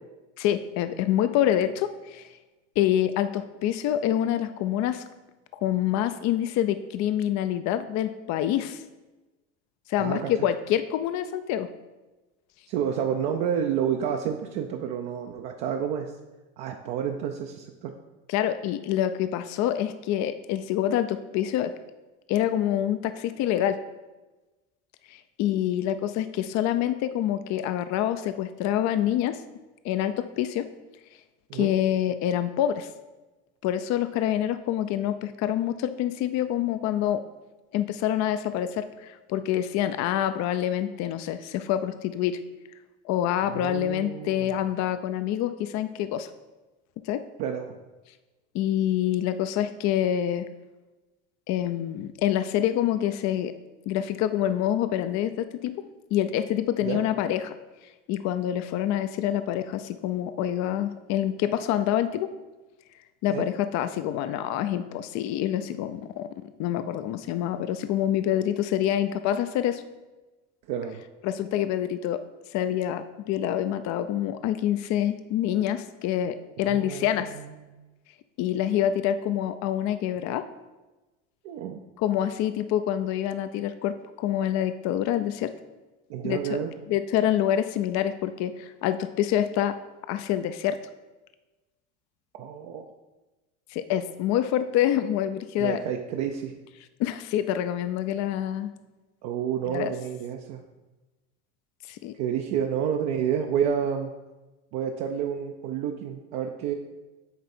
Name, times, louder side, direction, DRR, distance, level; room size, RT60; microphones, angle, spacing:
voice 1, 0.4-2.3 2.8-5.0 5.6-8.8 9.9-11.7 18.3-21.7 22.3-23.8 25.1-29.4 29.8-30.7 31.5-32.9 33.6-37.2 37.7-42.4 43.0-46.3 47.1-47.2 48.5-50.5 51.5-53.5 53.9-55.7 56.1-57.5 58.1-62.3 63.2-66.3 66.6-69.8 71.2-72.2 72.5-77.3 78.4-80.5 82.0-85.5 86.2-86.6 86.9-89.8 90.1-90.8 93.7-95.8 97.0-98.7 99.7-99.9 101.9-102.1, left 11 dB, 50° left, 10 dB, 0.4 m, -26 dB
voice 2, 10.0-10.3 12.7-16.1 16.6-17.9 31.5-31.7 43.4-44.6 47.4-47.7 56.8-57.0 63.3-63.5 70.7-71.0 76.7-77.8 81.4-81.8 86.1-86.7 92.4-92.8 95.6-96.6 99.2-100.6 102.2-104.1 104.7-106.7, right 8 dB, 65° right, 3 dB, 0.6 m, -29 dB
8.5 x 3.4 x 4.2 m, 1.1 s
hypercardioid pair, 80°, 36 cm